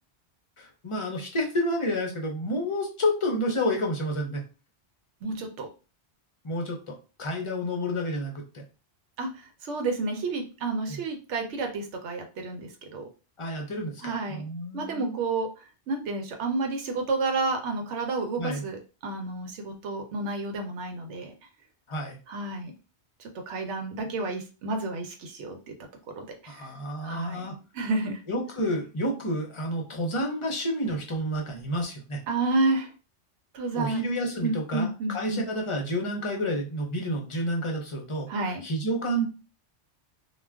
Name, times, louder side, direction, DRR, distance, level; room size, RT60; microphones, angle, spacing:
voice 1, 0.6-4.4 6.4-8.6 10.9-11.0 13.4-15.2 18.4-18.6 21.9-22.2 26.5-27.6 28.3-32.2 33.7-39.2, equal, 35° left, 1 dB, 0.5 m, -30 dB
voice 2, 5.2-5.7 9.2-13.1 14.0-14.4 14.7-21.3 22.3-22.7 23.2-25.7 26.2-26.7 27.0-27.5 27.7-28.2 32.3-32.9 33.5-34.1 34.4-35.4 38.3-38.6, right 3 dB, 90° right, 4 dB, 0.9 m, -30 dB
2.3 x 2.2 x 3.3 m, 0.33 s
omnidirectional pair, 1.2 m